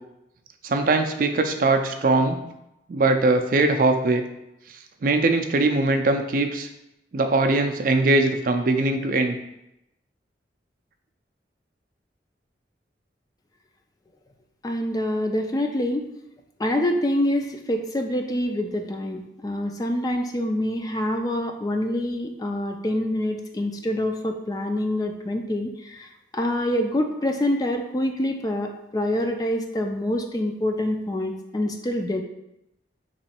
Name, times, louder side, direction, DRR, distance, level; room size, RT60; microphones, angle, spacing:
voice 1, 0.6-2.4 2.9-4.2 5.0-6.7 7.1-9.4, right 2 dB, 50° right, 5 dB, 0.4 m, -21 dB
voice 2, 14.6-16.1 16.6-26.1 26.3-32.2, left 1 dB, 20° left, 4 dB, 0.3 m, -26 dB
3.7 x 3.0 x 4.3 m, 0.86 s
head